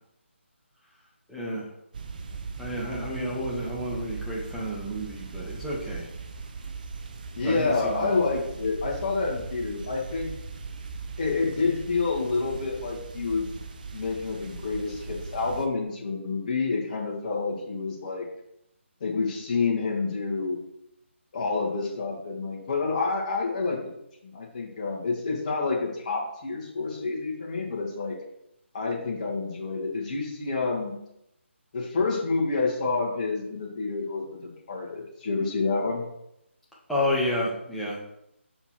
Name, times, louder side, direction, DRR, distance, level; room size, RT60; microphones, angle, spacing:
voice 1, 1.3-1.7 2.6-6.1 7.4-8.1 36.9-38.0, left 1 dB, ahead, -7 dB, 1.2 m, -30 dB
sound 1, 1.9-15.7, right 4 dB, 40° right, 0.6 m, -39 dB
voice 2, 7.4-10.3 11.2-13.6 13.9-18.3 19.0-20.6 21.3-23.9 24.2-28.2 28.7-31.0 31.7-36.0, left 4 dB, 35° left, -2 dB, 1.6 m, -28 dB
5.7 x 4.4 x 4.5 m, 0.80 s
figure-of-eight pair, 150°, 7 cm